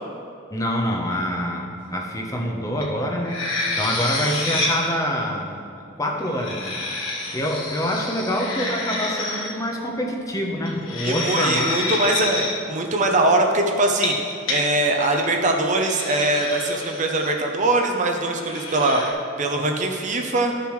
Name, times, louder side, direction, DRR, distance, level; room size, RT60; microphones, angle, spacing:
voice 1, 0.5-3.5 3.8-5.5 6.0-6.8 7.3-11.8, equal, 15° left, 1 dB, 0.8 m, -26 dB
sound 1, 2.8-2.9 3.2-4.9 6.2-9.5 10.7-12.5 13.9-14.6 15.0-15.3 15.8-17.3 18.4-19.1, left 2 dB, 75° left, 1.5 m, -28 dB
voice 2, 11.0-14.1 14.5-19.0 19.4-20.5, right 2 dB, 35° right, 2 dB, 0.7 m, -22 dB
13.0 x 6.8 x 3.2 m, 2.5 s
head